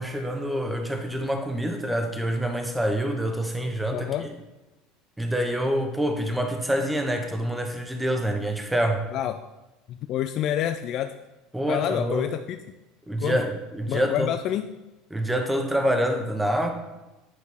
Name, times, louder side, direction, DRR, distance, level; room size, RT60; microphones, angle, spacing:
voice 1, 0.0-4.1 5.2-9.1 11.5-12.3 13.1-14.3 15.1-16.7, equal, 5° right, 4 dB, 1.0 m, -26 dB
voice 2, 3.9-4.3 9.1-9.4 9.9-11.2 11.7-12.6 13.2-13.4 13.9-14.7, left 11 dB, 50° left, 8 dB, 0.3 m, -28 dB
9.3 x 4.6 x 3.5 m, 1.0 s
hypercardioid pair, 80°, 0 cm